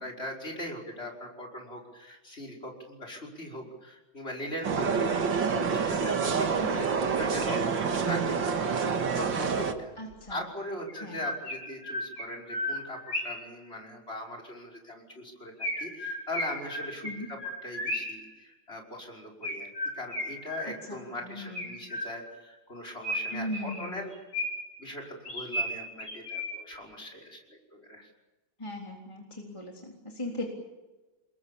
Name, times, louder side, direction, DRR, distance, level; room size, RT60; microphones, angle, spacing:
voice 1, 0.0-7.6 8.1-9.9 10.3-19.7 19.9-24.2 24.8-28.1, left 1 dB, 30° left, 1 dB, 5.8 m, -40 dB
sound 1, 4.6-9.7, right 5 dB, 65° right, 2.4 m, -27 dB
voice 2, 6.5-6.8 10.0-10.4 11.0-11.2 17.0-17.3 20.9-21.7 23.3-24.0 28.6-30.5, left 1 dB, 15° left, -1 dB, 3.7 m, -38 dB
Chirp tweet, 10.1-10.2 10.9-13.5 15.6-18.3 19.4-21.0 21.5-22.4 23.0-24.8 25.2-26.8, left 1 dB, 50° left, 7.1 m, -35 dB
29.5 x 22.0 x 7.2 m, 1.1 s
omnidirectional pair, 2.2 m